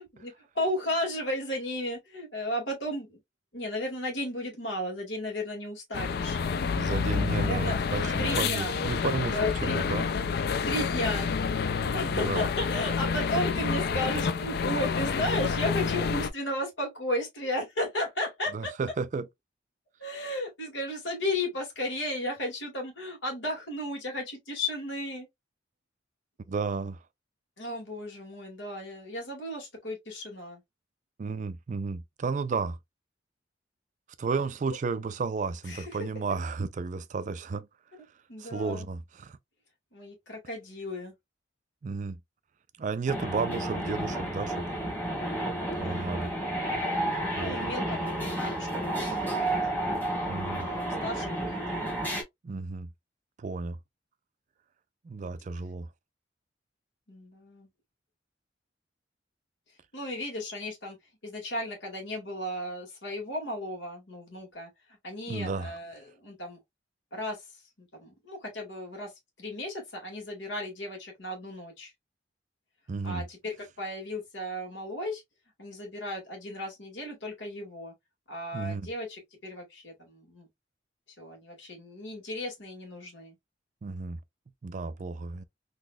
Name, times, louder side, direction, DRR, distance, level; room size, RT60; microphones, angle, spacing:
voice 1, 0.2-3.2 3.5-6.4 7.3-7.8 8.2-8.8 9.3-9.8 10.6-11.3 11.7-18.7 20.0-25.3 27.6-30.6 35.7-35.9 38.3-38.9 39.9-41.1 45.8-46.2 47.4-49.6 50.6-51.8 57.1-57.7 59.9-61.0 61.2-64.7 65.0-66.6 67.1-67.4 67.8-69.1 69.4-71.9 73.0-75.2 75.6-77.9 78.3-80.5 81.2-83.3, left 1 dB, 80° left, 1.9 m, -34 dB
sound 1, 5.9-16.3, left 5 dB, 55° left, 0.4 m, -28 dB
voice 2, 6.7-10.1 12.1-12.5 18.5-19.3 26.5-27.0 31.2-32.8 34.2-37.7 38.4-39.4 41.8-42.2 42.8-44.8 45.7-46.3 47.3-47.6 50.3-50.7 52.4-52.9 53.4-53.8 55.0-55.9 65.3-65.8 72.9-73.2 78.5-78.9 83.8-84.2 84.6-85.4, right 4 dB, 40° right, 0.4 m, -33 dB
sound 2, 43.1-52.2, right 1 dB, 10° left, 1.4 m, -31 dB
3.9 x 2.9 x 2.3 m
head